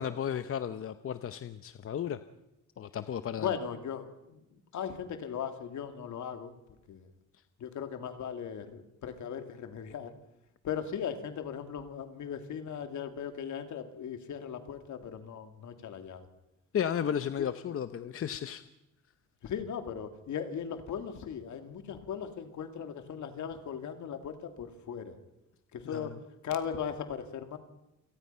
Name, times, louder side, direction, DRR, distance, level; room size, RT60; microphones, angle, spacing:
voice 1, 0.0-2.2 2.8-3.5 16.7-18.6 25.9-26.1, left 9 dB, 45° left, 11 dB, 0.8 m, -34 dB
voice 2, 3.4-6.5 6.9-7.1 7.6-10.1 10.6-16.3 17.4-17.5 19.4-25.2 25.7-26.1 26.4-27.6, left 8 dB, 70° left, 7 dB, 2.6 m, -38 dB
28.5 x 18.0 x 5.7 m, 0.88 s
cardioid pair, 120°, 31 cm